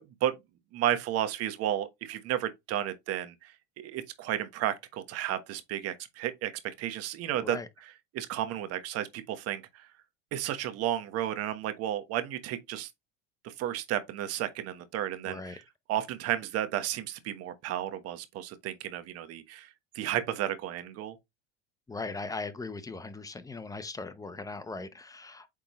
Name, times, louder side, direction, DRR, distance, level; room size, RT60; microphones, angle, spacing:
voice 1, 0.7-6.5 6.8-7.6 8.1-9.9 10.3-12.9 13.4-15.6 15.9-19.7 19.9-21.2, right 11 dB, 55° right, 1.3 m, -32 dB
voice 2, 15.3-15.6 21.9-25.5, left 3 dB, 10° left, 0.8 m, -39 dB
8.4 x 3.7 x 3.1 m
supercardioid pair, 115°, 29 cm